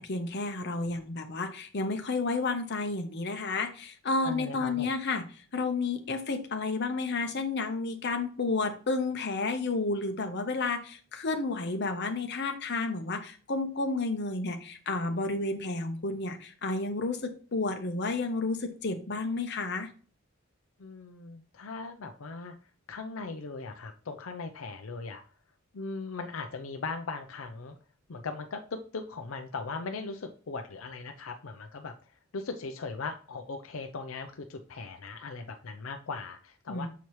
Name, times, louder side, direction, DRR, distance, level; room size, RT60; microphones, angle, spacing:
voice 1, 0.0-5.2 5.5-19.9 36.7-36.9, left 3 dB, 55° left, 6 dB, 0.9 m, -31 dB
voice 2, 4.2-4.9 20.8-22.5 22.9-25.2 25.7-27.8 28.1-31.9 32.3-36.9, left 4 dB, 80° left, 6 dB, 0.6 m, -39 dB
6.9 x 4.6 x 3.1 m, 0.40 s
head